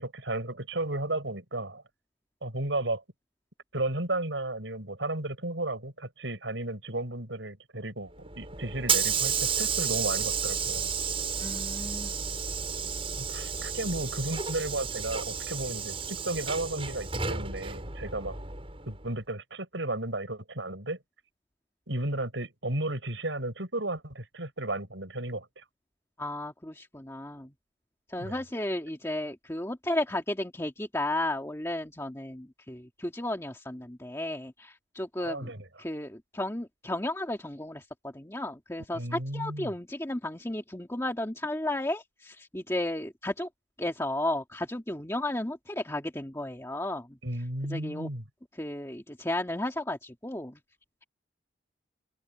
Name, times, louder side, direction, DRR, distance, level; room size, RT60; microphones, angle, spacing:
voice 1, 0.0-1.8 2.4-3.0 3.7-10.9 13.2-18.4 18.9-21.0 21.9-25.6 28.2-28.4 35.2-35.7 38.9-39.7 47.2-48.2, right 2 dB, 80° right, 6.2 m, -34 dB
Hiss / Sliding door, 8.2-19.0, right 6 dB, 30° right, 7.5 m, -32 dB
voice 2, 11.4-12.1 13.6-13.7 26.2-27.5 28.1-35.5 35.8-37.8 38.1-43.5 43.8-47.1 47.7-48.1 48.6-50.6, left 1 dB, 15° left, 1.8 m, -33 dB
open air
head